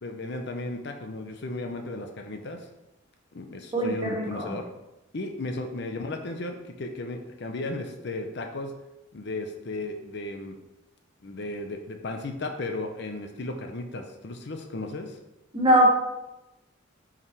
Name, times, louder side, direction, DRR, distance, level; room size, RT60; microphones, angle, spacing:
voice 1, 0.0-2.7 3.3-4.7 5.1-8.7 9.1-10.6 11.2-15.2, left 2 dB, 55° left, 5 dB, 0.6 m, -35 dB
voice 2, 3.7-4.5 15.5-15.9, equal, 25° right, -4 dB, 1.8 m, -22 dB
5.9 x 4.9 x 4.7 m, 0.95 s
head